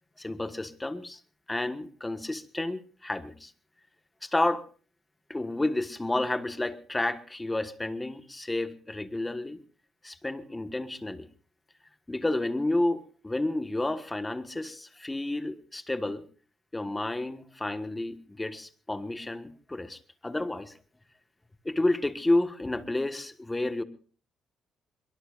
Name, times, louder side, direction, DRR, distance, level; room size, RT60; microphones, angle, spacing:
voice 1, 0.2-1.2 1.5-3.5 4.2-4.6 5.3-9.6 10.0-11.3 12.1-16.2 16.7-20.7 21.6-23.8, left 2 dB, 15° left, 10 dB, 1.5 m, -30 dB
23.0 x 23.0 x 2.5 m, 0.41 s
cardioid pair, 90°, 0 cm